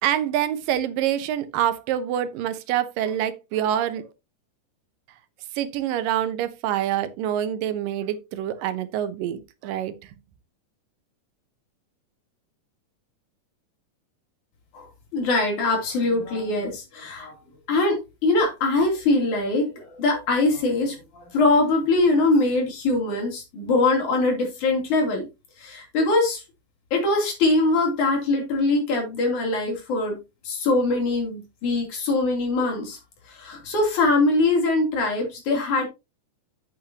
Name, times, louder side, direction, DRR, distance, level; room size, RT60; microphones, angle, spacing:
voice 1, 0.0-4.1 5.6-9.9, right 11 dB, 90° right, 2.6 m, -26 dB
voice 2, 15.1-17.4 17.7-25.3 25.6-26.4 26.9-30.2 30.4-33.0 33.3-35.9, left 2 dB, 65° left, 4.4 m, -22 dB
8.7 x 8.4 x 2.8 m
omnidirectional pair, 3.8 m